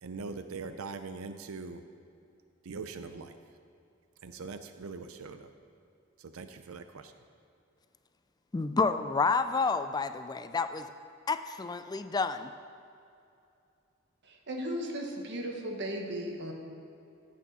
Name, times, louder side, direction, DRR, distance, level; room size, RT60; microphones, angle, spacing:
voice 1, 0.0-1.8 2.6-3.3 4.2-5.5 6.2-7.1, right 4 dB, 90° right, 9 dB, 0.5 m, -42 dB
voice 2, 8.5-10.9 11.3-12.5, left 4 dB, 20° left, 10 dB, 0.3 m, -29 dB
voice 3, 14.2-16.5, equal, 60° right, 2 dB, 1.4 m, -36 dB
15.0 x 8.5 x 4.1 m, 2.5 s
head